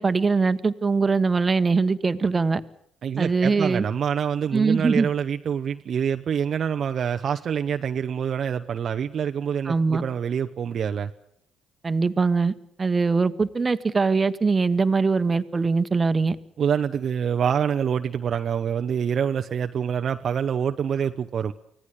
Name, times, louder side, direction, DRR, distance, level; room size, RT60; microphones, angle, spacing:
voice 1, 0.0-2.6 3.2-3.8 4.5-5.1 9.7-10.0 11.8-12.5 12.8-16.4, right 4 dB, 30° right, 12 dB, 1.3 m, -22 dB
voice 2, 3.0-11.1 16.6-21.5, right 7 dB, 55° right, 7 dB, 0.8 m, -26 dB
24.5 x 16.5 x 8.4 m, 0.70 s
hypercardioid pair, 50°, 0 cm